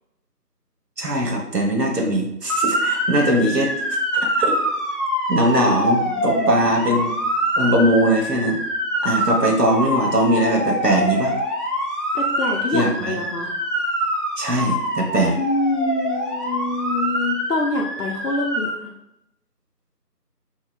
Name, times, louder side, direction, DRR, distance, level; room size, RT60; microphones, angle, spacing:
voice 1, 1.0-3.7 4.4-4.5 5.3-7.2 7.6-8.6 9.0-11.3 12.7-13.2 14.4-15.3, right 1 dB, 80° right, 0 dB, 1.0 m, -20 dB
Motor vehicle (road) / Siren, 2.5-18.7, equal, ahead, 0.5 m, -24 dB
voice 2, 6.0-6.6 12.1-13.6 15.4-18.9, left 2 dB, 75° left, 0 dB, 0.6 m, -26 dB
2.8 x 2.4 x 3.2 m, 0.85 s
figure-of-eight pair, 180°, 48 cm